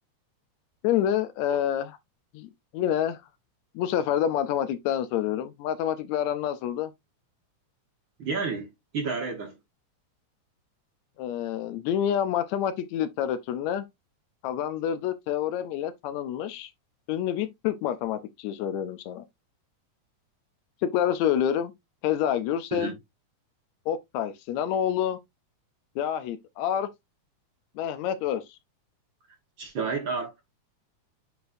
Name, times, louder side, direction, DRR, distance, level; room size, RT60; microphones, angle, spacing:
voice 1, 0.8-2.0 2.3-3.2 3.8-6.9 11.2-13.9 14.4-16.7 17.1-19.2 20.8-21.7 22.0-23.0 23.9-25.2 26.0-26.9 27.8-28.6, left 10 dB, 80° left, 1.8 m, -28 dB
voice 2, 8.2-8.7 8.9-9.6 22.7-22.9 29.6-30.3, right 4 dB, 50° right, 1.7 m, -30 dB
9.3 x 4.0 x 2.6 m
omnidirectional pair, 3.4 m